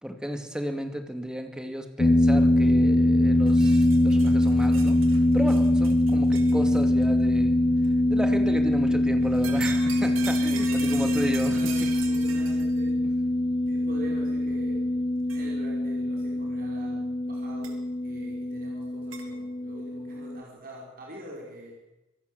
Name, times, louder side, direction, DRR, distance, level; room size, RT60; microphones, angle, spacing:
voice 1, 0.0-7.6 8.1-11.9, equal, 5° right, 5 dB, 2.3 m, -34 dB
sound 1, 2.0-20.4, left 1 dB, 25° left, 0.9 m, -23 dB
sound 2, 3.5-7.0 7.8-7.9 9.2-12.8 13.7-13.8 15.3-15.4 17.6-17.7 19.1-19.3, right 8 dB, 85° right, 3.6 m, -40 dB
voice 2, 10.5-13.0 13.7-15.0 15.3-17.8 18.0-21.8, right 1 dB, 45° right, -3 dB, 5.3 m, -44 dB
26.0 x 18.0 x 8.1 m, 0.99 s
head